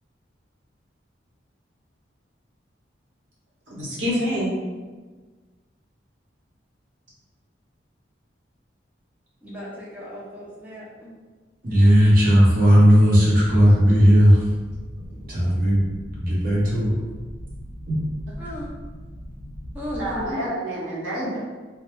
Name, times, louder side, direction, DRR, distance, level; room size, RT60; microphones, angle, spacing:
voice 1, 3.7-4.6 15.0-15.3 20.0-21.4, equal, 90° right, -7 dB, 1.0 m, -28 dB
voice 2, 9.4-11.1 18.4-18.7 19.7-20.5, left 1 dB, 10° right, -7 dB, 0.4 m, -35 dB
voice 3, 11.6-14.4 15.3-15.9 16.2-16.9 17.9-18.0, equal, 50° right, -7 dB, 0.8 m, -16 dB
sound 1, 13.4-20.3, equal, 85° left, 0.7 m, -39 dB
2.2 x 2.1 x 2.9 m, 1.3 s
head